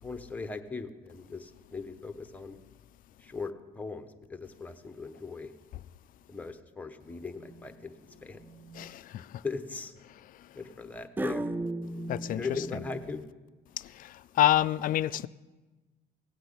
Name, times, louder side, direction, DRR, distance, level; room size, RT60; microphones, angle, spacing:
voice 1, 0.0-2.6 3.2-5.5 6.3-7.9 8.2-8.4 9.4-9.9 10.5-11.5 12.3-13.3, left 4 dB, 10° left, 1.0 m, -39 dB
sound 1, 7.3-7.7 8.4-8.9 11.2-13.1, right 2 dB, 10° right, 0.4 m, -36 dB
voice 2, 8.8-9.2 12.1-12.5 14.0-14.1 14.4-15.3, left 13 dB, 55° left, 0.4 m, -26 dB
16.5 x 6.0 x 8.5 m
cardioid pair, 110°, 17 cm